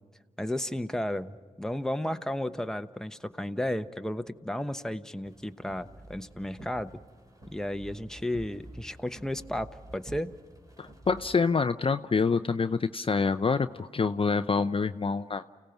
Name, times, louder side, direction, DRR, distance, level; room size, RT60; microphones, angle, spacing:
voice 1, 0.4-7.0 7.5-10.3, left 1 dB, 5° left, 8 dB, 1.0 m, -33 dB
sound 1, 5.3-11.4, right 1 dB, 25° right, 3.1 m, -49 dB
voice 2, 10.8-15.4, left 4 dB, 35° left, 10 dB, 0.6 m, -26 dB
29.5 x 17.0 x 6.0 m, 1.5 s
supercardioid pair, 45°, 15 cm